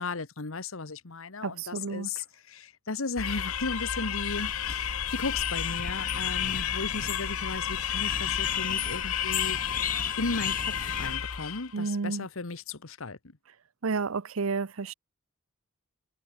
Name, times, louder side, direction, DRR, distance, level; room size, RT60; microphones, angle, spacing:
voice 1, 0.0-9.6 10.2-13.2, left 3 dB, 70° left, 1.3 m, -35 dB
voice 2, 1.4-2.1 11.7-12.3 13.8-14.9, right 4 dB, 70° right, 0.7 m, -31 dB
sound 1, 3.2-11.7, left 9 dB, 90° left, 1.1 m, -31 dB
sound 2, 4.2-11.2, left 7 dB, 40° left, 4.7 m, -37 dB
head